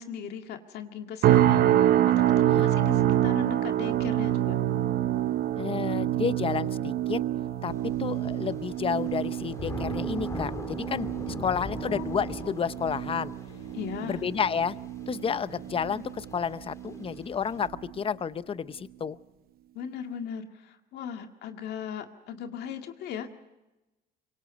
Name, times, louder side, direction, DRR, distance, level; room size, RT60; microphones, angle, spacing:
voice 1, 0.0-4.6 11.3-12.0 12.4-12.5 13.7-14.2 19.7-23.3, left 8 dB, 75° left, 5 dB, 2.0 m, -38 dB
sound 1, 1.2-16.4 16.8-17.2 17.7-17.9, right 12 dB, 65° right, 0.9 m, -27 dB
voice 2, 5.6-7.2 7.6-7.7 8.0-13.3 14.0-14.8 15.1-19.2, left 7 dB, 35° left, 15 dB, 0.7 m, -31 dB
Thunder / Rain, 7.7-17.7, left 2 dB, 20° left, 2.6 m, -42 dB
25.5 x 24.0 x 5.2 m, 1.0 s
cardioid pair, 110°, 17 cm